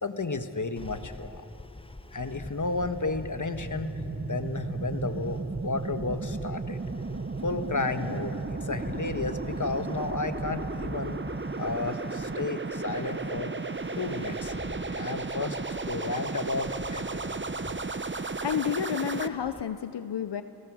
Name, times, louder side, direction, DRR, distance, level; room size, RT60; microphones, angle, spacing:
voice 1, 0.0-1.5 2.1-6.8 7.4-11.2 11.6-13.5 14.0-14.5 14.9-15.6 15.9-17.4, left 3 dB, 45° left, 8 dB, 1.4 m, -32 dB
sound 1, 0.8-19.6, left 2 dB, 15° left, 0.6 m, -45 dB
sound 2, 2.8-19.3, right 3 dB, 30° right, 0.8 m, -34 dB
voice 2, 18.4-20.4, left 8 dB, 85° left, 11 dB, 0.7 m, -30 dB
30.0 x 18.0 x 6.3 m, 3.0 s
wide cardioid pair, 40°, 40 cm